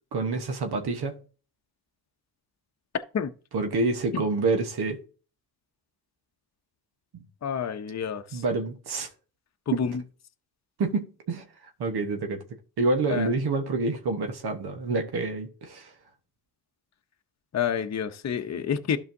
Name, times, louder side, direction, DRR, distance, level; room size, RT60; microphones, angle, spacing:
voice 1, 0.1-1.2 3.5-5.0 7.1-7.2 8.3-9.1 9.7-9.9 10.8-11.4 11.8-12.4 12.8-15.9, right 3 dB, 85° right, 1.2 m, -27 dB
voice 2, 7.4-8.4 9.7-9.9 13.1-13.3 17.5-19.0, left 7 dB, 45° left, 0.7 m, -28 dB
12.0 x 5.5 x 2.7 m
cardioid pair, 90°, 38 cm